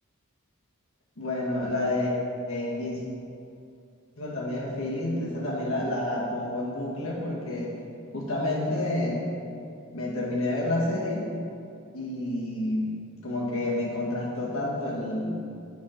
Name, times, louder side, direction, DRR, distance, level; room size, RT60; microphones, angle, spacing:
voice 1, 1.2-2.1 2.5-3.0 4.2-7.7 8.1-9.2 9.9-11.3 11.9-12.9 13.2-15.4, left 1 dB, 70° left, -4 dB, 1.9 m, -29 dB
7.2 x 6.1 x 5.2 m, 2.5 s
head